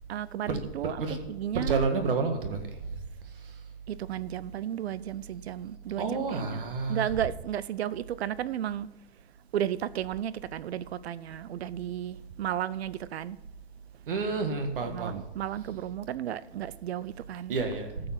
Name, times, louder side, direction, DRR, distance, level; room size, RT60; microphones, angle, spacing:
voice 1, 0.1-1.0 1.3-1.8 3.9-6.6 6.9-8.9 9.5-13.4 14.8-17.6, right 11 dB, 80° right, 0.6 m, -33 dB
voice 2, 1.5-2.9 3.3-3.6 6.0-7.0 14.1-15.2 17.5-18.1, right 4 dB, 55° right, 1.8 m, -30 dB
14.0 x 6.8 x 5.8 m
hypercardioid pair, 180°, 32 cm